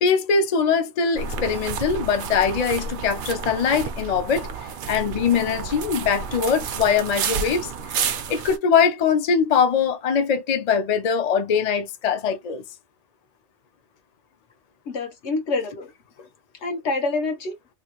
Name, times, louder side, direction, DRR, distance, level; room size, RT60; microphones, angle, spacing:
voice 1, 0.0-4.5 4.9-12.6, left 6 dB, 50° left, 0.5 m, -22 dB
sound 1, 1.2-8.6, right 6 dB, 60° right, 0.6 m, -30 dB
voice 2, 14.9-15.9 16.6-17.6, left 3 dB, 75° left, 1.2 m, -26 dB
3.1 x 2.3 x 2.9 m
omnidirectional pair, 1.2 m